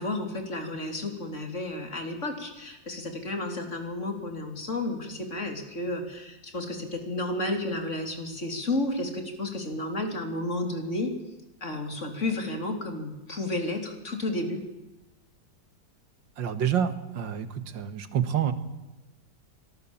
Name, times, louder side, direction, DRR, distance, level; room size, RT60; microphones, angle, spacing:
voice 1, 0.0-11.1 11.6-14.6, left 2 dB, 40° left, 4 dB, 3.8 m, -32 dB
voice 2, 16.4-18.5, right 9 dB, 85° right, 10 dB, 2.3 m, -28 dB
25.5 x 19.0 x 7.3 m, 1.0 s
omnidirectional pair, 2.0 m